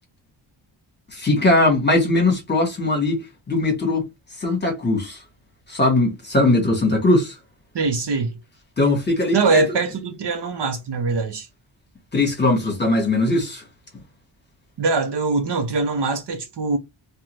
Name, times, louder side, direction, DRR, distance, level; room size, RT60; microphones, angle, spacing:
voice 1, 1.1-4.1 4.4-5.2 5.7-7.4 8.8-9.6 12.1-13.6, left 2 dB, 20° left, 1.2 m, -20 dB
voice 2, 7.7-8.4 9.3-11.5 14.8-16.8, right 3 dB, 60° right, 0.7 m, -22 dB
2.5 x 2.3 x 3.0 m
wide cardioid pair, 180°, 47 cm